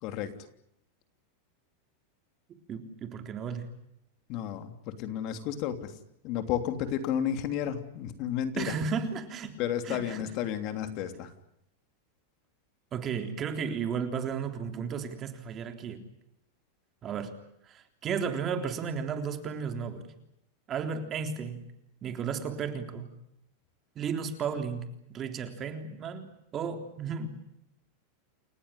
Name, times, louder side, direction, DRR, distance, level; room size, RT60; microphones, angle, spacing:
voice 1, 0.0-0.3 4.3-5.9 6.2-8.7 9.6-11.3, left 9 dB, 45° left, 8 dB, 3.1 m, -32 dB
voice 2, 2.5-3.7 8.6-9.5 9.8-10.2 12.9-16.0 17.0-17.3 17.7-20.1 20.7-21.6 22.0-23.1 24.0-24.8 25.1-27.3, right 6 dB, 30° right, 7 dB, 3.5 m, -34 dB
29.5 x 15.5 x 10.0 m, 0.77 s
supercardioid pair, 145°, 0 cm